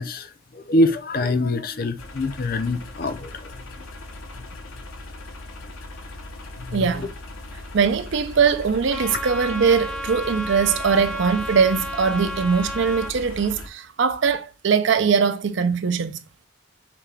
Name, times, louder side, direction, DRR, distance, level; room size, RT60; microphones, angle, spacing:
voice 1, 0.0-3.6 4.3-4.4 6.6-7.1, left 1 dB, 45° left, 0.5 m, -25 dB
sound 1, 2.0-13.7, left 2 dB, 85° left, 0.9 m, -39 dB
voice 2, 6.7-7.1 7.7-16.2, right 6 dB, 55° right, 0.4 m, -21 dB
Trumpet, 8.9-13.1, left 1 dB, 5° left, 0.7 m, -32 dB
5.8 x 2.2 x 3.3 m
head